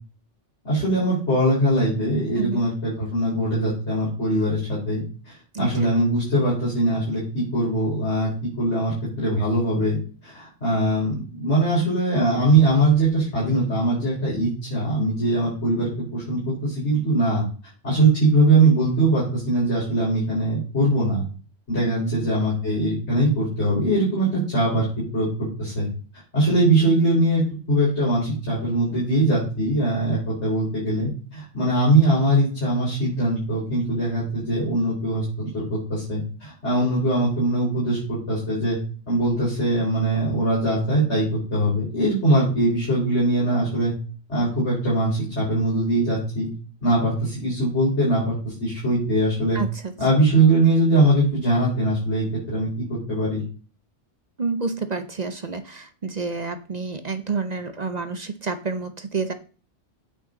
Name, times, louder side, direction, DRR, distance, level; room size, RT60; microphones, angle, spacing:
voice 1, 0.6-8.3 8.6-10.0 10.2-17.4 17.8-21.2 21.7-24.9 25.1-25.9 26.3-27.4 27.7-38.8 39.1-43.9 44.3-46.5 46.8-49.6 50.0-53.4, right 1 dB, 65° left, -8 dB, 4.8 m, -21 dB
voice 2, 2.4-2.7 5.5-5.9 21.8-22.2 49.5-49.9 54.4-59.3, right 4 dB, 40° right, 10 dB, 0.7 m, -29 dB
9.0 x 7.3 x 3.9 m, 0.38 s
omnidirectional pair, 1.3 m